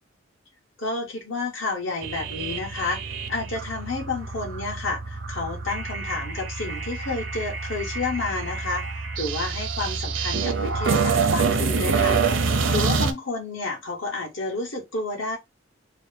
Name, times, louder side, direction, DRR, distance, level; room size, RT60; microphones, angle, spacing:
voice 1, 0.8-3.0 3.3-12.2 12.7-15.4, left 3 dB, 85° left, 1.7 m, -30 dB
sound 1, 2.0-13.1, right 4 dB, 75° right, 0.6 m, -26 dB
3.3 x 2.2 x 4.1 m
head